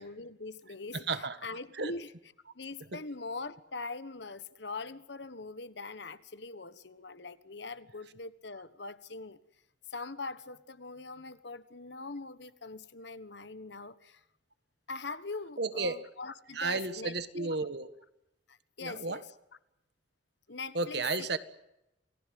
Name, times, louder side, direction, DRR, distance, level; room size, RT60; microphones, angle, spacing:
voice 1, 0.0-2.1 2.5-9.4 9.9-14.2 14.9-17.5 18.5-19.2 20.5-21.1, left 3 dB, 65° left, 1.4 m, -42 dB
voice 2, 0.9-1.4 1.8-1.9 2.9-3.0 15.6-16.0 16.5-17.9 18.8-19.2 20.7-21.4, right 3 dB, 60° right, 1.6 m, -33 dB
28.5 x 19.5 x 7.8 m
head